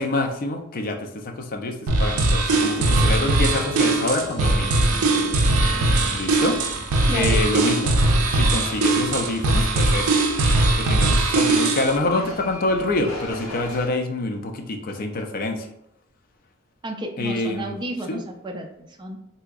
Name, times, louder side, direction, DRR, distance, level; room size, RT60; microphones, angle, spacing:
voice 1, 0.0-4.7 6.1-6.6 7.1-7.9 8.3-10.2 10.7-15.7 17.2-17.7 18.1-18.2, left 2 dB, 40° left, 4 dB, 0.4 m, -26 dB
sound 1, 1.9-12.0, right 2 dB, 80° right, 0.4 m, -20 dB
sound 2, 2.5-9.6, equal, 50° right, 1.3 m, -38 dB
sound 3, 5.5-13.9, left 1 dB, 80° left, 1.5 m, -40 dB
voice 2, 7.1-7.6 16.8-19.2, right 1 dB, 20° right, 2 dB, 0.4 m, -32 dB
3.4 x 2.8 x 2.3 m, 0.77 s
head